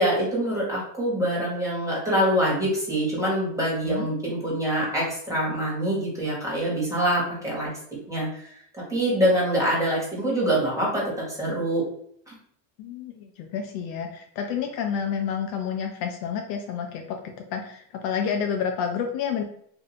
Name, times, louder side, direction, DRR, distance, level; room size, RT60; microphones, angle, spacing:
voice 1, 0.0-7.7 8.1-11.0 11.3-11.8 12.3-12.4, right 1 dB, 5° right, -5 dB, 1.5 m, -25 dB
voice 2, 12.8-19.4, left 7 dB, 55° left, 4 dB, 0.5 m, -29 dB
2.7 x 2.6 x 4.1 m, 0.68 s
supercardioid pair, 135°, 44 cm